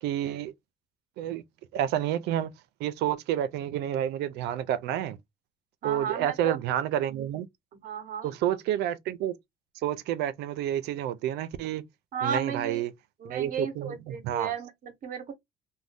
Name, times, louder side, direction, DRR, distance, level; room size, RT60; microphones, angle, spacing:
voice 1, 0.0-0.5 1.2-1.4 1.7-2.5 2.8-5.2 5.8-7.5 8.2-9.3 9.8-11.8 12.2-12.9 13.2-14.5, right 11 dB, 85° right, 0.4 m, -29 dB
voice 2, 5.8-6.6 7.7-8.3 12.1-12.8 13.2-15.3, right 6 dB, 55° right, 0.8 m, -34 dB
2.6 x 2.1 x 3.3 m
cardioid pair, 110°, 17 cm